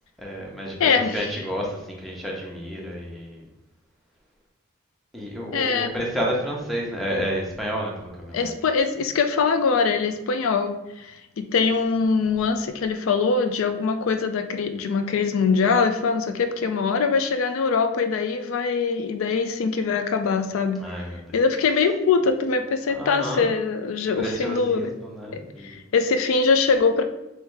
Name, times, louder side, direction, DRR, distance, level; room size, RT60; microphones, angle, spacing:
voice 1, 0.2-3.5 5.1-8.5 20.8-21.8 22.9-23.5 24.2-25.7, equal, ahead, -3 dB, 0.8 m, -31 dB
voice 2, 0.8-1.2 5.5-5.9 8.3-20.8 21.3-24.9 25.3-27.0, left 5 dB, 80° left, 8 dB, 0.4 m, -23 dB
3.3 x 3.2 x 4.6 m, 0.96 s
head